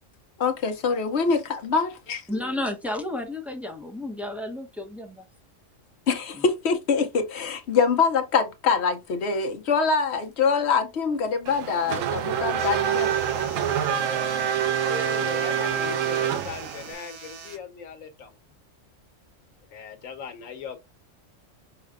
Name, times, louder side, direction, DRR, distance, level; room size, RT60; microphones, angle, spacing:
voice 1, 0.4-2.2 6.1-13.2, left 5 dB, 60° left, 0.9 m, -24 dB
voice 2, 2.3-5.3, left 1 dB, ahead, 0.6 m, -32 dB
Race car auto racing / Accelerating revving vroom, 11.5-16.9, right 9 dB, 80° right, 1.0 m, -26 dB
sound 1, 12.6-17.6, right 6 dB, 65° right, 1.2 m, -43 dB
voice 3, 14.9-18.4 19.7-20.8, left 6 dB, 85° left, 1.3 m, -38 dB
5.6 x 2.1 x 3.4 m
omnidirectional pair, 1.3 m